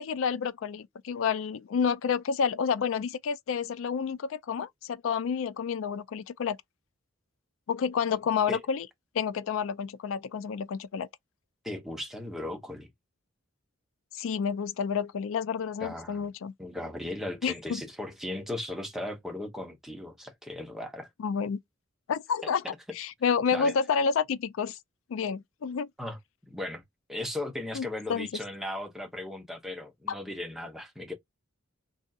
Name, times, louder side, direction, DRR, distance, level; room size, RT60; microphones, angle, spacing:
voice 1, 0.0-6.6 7.7-8.9 9.1-11.1 14.1-16.5 17.4-17.8 21.2-21.6 22.1-22.6 22.9-24.8 25.1-25.9 27.7-28.3 30.1-30.2, left 6 dB, 70° left, 0.3 m, -29 dB
voice 2, 11.6-12.9 15.8-16.3 16.6-21.1 22.4-22.5 23.5-23.7 26.0-26.2 26.5-26.8 27.1-31.1, left 1 dB, ahead, 0.8 m, -37 dB
3.5 x 2.7 x 2.3 m
head